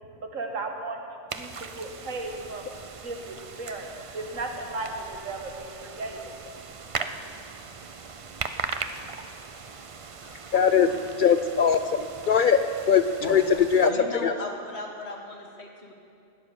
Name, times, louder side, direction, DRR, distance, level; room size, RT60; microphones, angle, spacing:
voice 1, 0.2-1.0 1.3-2.7 3.0-6.3, right 2 dB, 70° right, 3 dB, 1.9 m, -35 dB
sound 1, 1.3-13.9, right 5 dB, 50° right, 0.3 m, -39 dB
voice 2, 10.5-10.9 11.2-13.0 13.3-13.4 13.7-13.9 14.2-14.3, left 7 dB, 75° left, 9 dB, 0.4 m, -21 dB
voice 3, 13.8-15.9, left 2 dB, 55° left, 1 dB, 2.0 m, -36 dB
16.0 x 10.0 x 6.9 m, 2.4 s
omnidirectional pair, 1.4 m